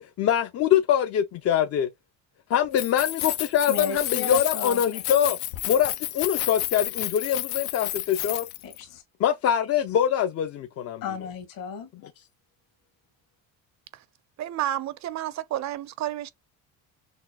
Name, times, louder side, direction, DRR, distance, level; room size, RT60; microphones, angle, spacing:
voice 1, 0.0-1.9 2.5-5.4 5.7-8.5 9.2-11.0, left 9 dB, 40° left, 0.5 m, -24 dB
Keys jangling, 2.6-8.8, left 15 dB, 90° left, 0.7 m, -31 dB
voice 2, 3.7-4.8 8.6-9.0 11.0-11.9, left 5 dB, 65° left, 1.8 m, -34 dB
voice 3, 14.4-16.3, right 13 dB, 50° right, 0.5 m, -30 dB
6.1 x 2.3 x 2.2 m
cardioid pair, 130°, 37 cm